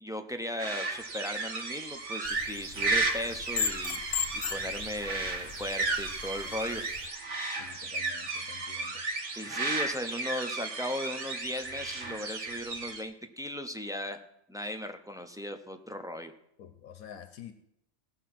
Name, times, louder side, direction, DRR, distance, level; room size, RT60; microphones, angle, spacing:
voice 1, 0.0-4.0 4.3-6.8 9.4-14.2 14.5-16.3, left 1 dB, 5° right, 5 dB, 0.5 m, -37 dB
sound 1, 0.6-13.0, right 3 dB, 55° right, 1.6 m, -34 dB
sound 2, 2.2-7.1, left 6 dB, 55° left, 0.7 m, -37 dB
voice 2, 7.6-9.0 16.6-17.5, left 9 dB, 75° left, 9 dB, 1.2 m, -48 dB
17.0 x 6.2 x 6.0 m, 0.77 s
omnidirectional pair, 1.5 m